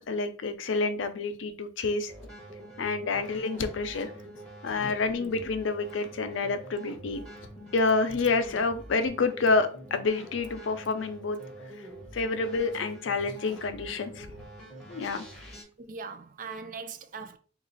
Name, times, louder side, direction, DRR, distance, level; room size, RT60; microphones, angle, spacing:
voice 1, 0.0-2.1 2.8-4.1 4.6-7.2 7.7-11.4 12.1-14.3 14.9-15.2, left 3 dB, 90° left, 0.5 m, -28 dB
sound 1, 2.1-15.6, right 1 dB, 5° left, 0.9 m, -46 dB
voice 2, 15.8-17.4, right 5 dB, 45° right, 0.4 m, -40 dB
3.1 x 2.4 x 3.9 m
head